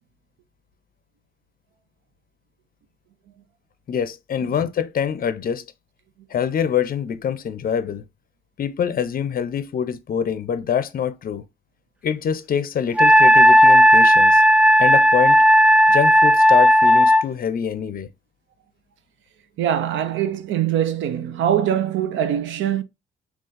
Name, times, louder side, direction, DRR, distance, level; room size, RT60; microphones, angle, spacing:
voice 1, 3.9-5.7 6.3-8.0 8.6-11.4 12.0-14.4 14.8-15.4 15.9-18.1, left 8 dB, 45° left, 0.5 m, -25 dB
Wind instrument woodwind instrument, 13.0-17.2, equal, 5° right, 0.3 m, -13 dB
voice 2, 19.6-22.8, right 10 dB, 75° right, 0.6 m, -22 dB
3.8 x 2.4 x 3.9 m
cardioid pair, 90°, 20 cm